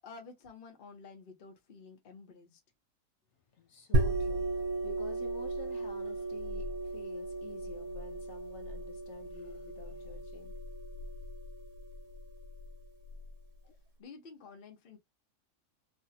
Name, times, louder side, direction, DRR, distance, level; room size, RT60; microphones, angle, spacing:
voice 1, 0.0-2.6 14.0-15.0, left 4 dB, 40° left, 0.9 m, -51 dB
voice 2, 3.6-10.6 13.6-13.8, left 2 dB, 65° left, 0.8 m, -50 dB
sound 1, 3.9-13.3, right 2 dB, 65° right, 1.2 m, -35 dB
3.5 x 2.2 x 2.6 m
omnidirectional pair, 1.7 m